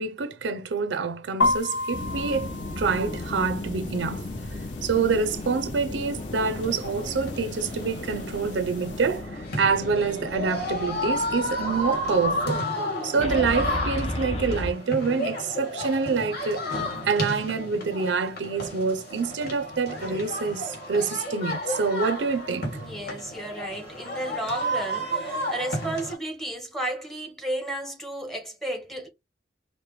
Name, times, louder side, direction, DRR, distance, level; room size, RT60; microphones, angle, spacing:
voice 1, 0.0-4.2 4.8-12.6 13.0-22.7, right 5 dB, 75° right, 0.5 m, -26 dB
sound 1, 1.4-9.2, left 2 dB, 85° left, 0.9 m, -34 dB
sound 2, 1.9-12.6 13.2-14.7, left 2 dB, 35° left, 0.7 m, -35 dB
sound 3, 6.4-26.1, left 1 dB, 60° left, 1.7 m, -32 dB
voice 2, 22.8-29.1, right 1 dB, ahead, 0.9 m, -33 dB
4.8 x 2.1 x 3.0 m
head